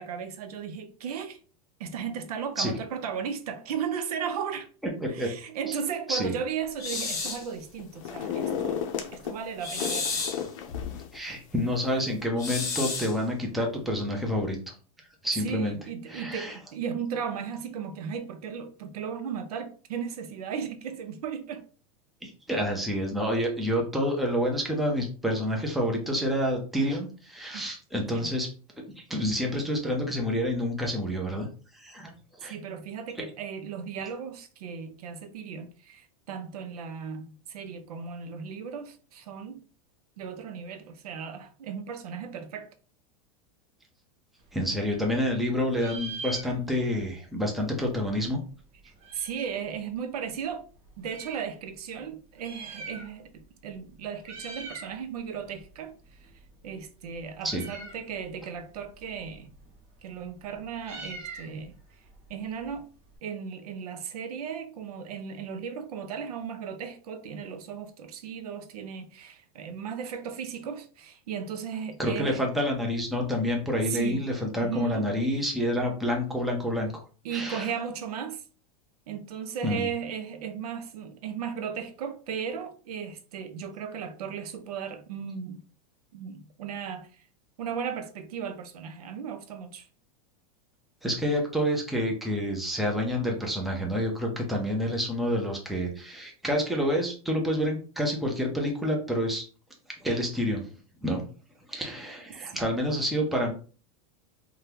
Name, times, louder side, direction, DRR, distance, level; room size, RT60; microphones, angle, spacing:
voice 1, 0.0-1.4 1.8-4.7 5.1-10.2 15.4-21.7 27.5-27.6 28.1-28.3 32.4-39.6 40.2-42.8 48.8-50.6 51.0-56.3 56.6-59.5 60.0-61.7 62.3-62.9 63.2-72.5 73.9-74.2 74.6-75.1 77.2-78.4 79.1-85.6 86.1-87.2 87.6-89.9 102.5-102.6, right 7 dB, 90° right, 0.6 m, -36 dB
sound 1, 6.8-7.5 9.6-10.5 12.4-13.2, left 4 dB, 15° left, 0.8 m, -31 dB
sound 2, 6.9-7.4 7.8-9.4 9.8-11.2 11.6-11.7, left 8 dB, 60° left, 0.6 m, -33 dB
voice 2, 11.1-14.6 15.2-15.7 16.1-16.6 22.2-28.5 28.8-31.5 31.7-32.1 32.4-32.5 44.5-48.4 57.4-57.6 72.0-77.0 77.3-77.7 79.6-79.9 91.0-99.4 100.0-100.6 101.0-101.2 101.7-103.5, equal, ahead, 0.5 m, -28 dB
Meow, 44.4-45.4 45.7-47.0 47.2-47.3 47.5-49.6 50.3-51.5 52.2-53.4 53.7-53.9 54.2-55.0 55.3-63.2, right 3 dB, 35° right, 1.0 m, -44 dB
2.8 x 2.2 x 3.2 m
supercardioid pair, 155°, 19 cm